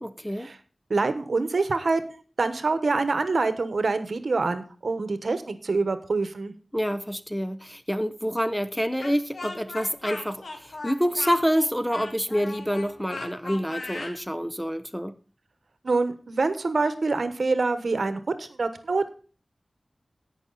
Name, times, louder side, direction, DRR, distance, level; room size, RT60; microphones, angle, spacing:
voice 1, 0.0-0.5 6.7-15.2, equal, 5° left, 0.7 m, -27 dB
voice 2, 0.9-6.5 15.8-19.1, right 3 dB, 75° right, 1.1 m, -26 dB
Speech, 9.0-14.2, left 2 dB, 85° left, 1.8 m, -38 dB
17.0 x 5.9 x 4.0 m
wide cardioid pair, 75°, 0 cm